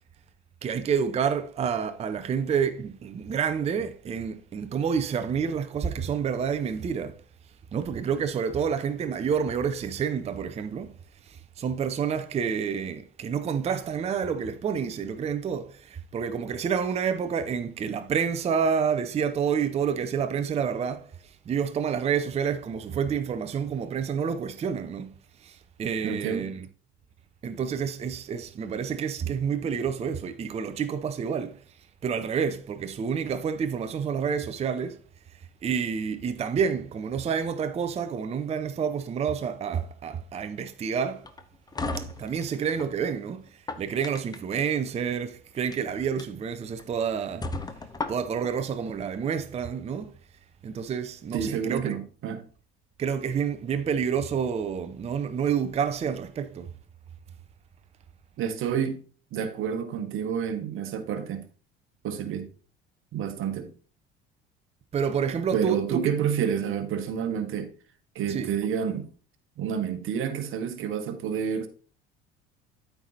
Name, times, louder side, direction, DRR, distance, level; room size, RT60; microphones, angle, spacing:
voice 1, 0.6-7.2 7.7-10.9 11.3-21.1 21.5-25.1 25.4-26.6 27.4-31.6 32.0-35.0 35.6-41.3 42.0-43.4 43.8-47.5 48.1-50.1 50.6-51.9 53.0-56.7 64.9-66.0 68.3-68.5, right 7 dB, 20° right, 0.6 m, -29 dB
voice 2, 26.0-26.5 51.3-52.4 58.4-59.0 59.3-61.5 62.0-62.5 63.1-63.7 65.5-67.7 68.1-69.1 69.6-71.7, right 8 dB, 40° right, 1.2 m, -29 dB
sound 1, 41.2-42.9 43.5-44.6 45.6-45.8 46.2-46.3 46.8-46.9 47.4-48.5, left 2 dB, 10° left, 0.8 m, -35 dB
13.0 x 4.6 x 2.8 m
figure-of-eight pair, 60°, 31 cm